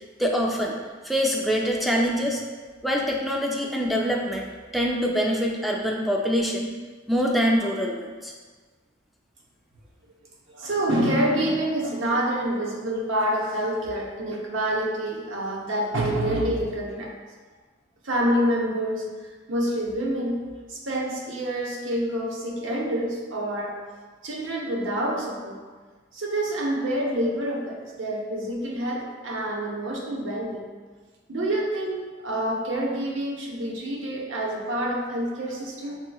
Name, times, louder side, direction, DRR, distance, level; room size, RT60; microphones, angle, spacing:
voice 1, 0.2-0.7 1.0-2.4 2.8-4.4 4.7-6.7 7.1-8.3, equal, ahead, -2 dB, 0.4 m, -24 dB
voice 2, 10.5-17.1 18.0-20.4 20.7-23.8 24.2-25.6 26.1-30.6 31.3-36.0, right 1 dB, 85° right, -2 dB, 0.8 m, -27 dB
6.1 x 2.9 x 2.3 m, 1.4 s
head